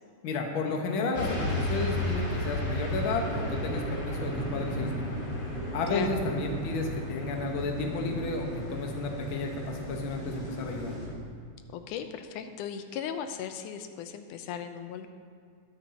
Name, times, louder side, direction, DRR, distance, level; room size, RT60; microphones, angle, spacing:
voice 1, 0.2-5.1 5.7-11.0, left 3 dB, 55° left, 2 dB, 1.5 m, -32 dB
sound 1, 1.1-11.1, equal, 25° left, 2.7 m, -33 dB
voice 2, 11.7-15.1, left 8 dB, 85° left, 8 dB, 2.1 m, -37 dB
21.0 x 9.0 x 2.8 m, 2.1 s
omnidirectional pair, 3.6 m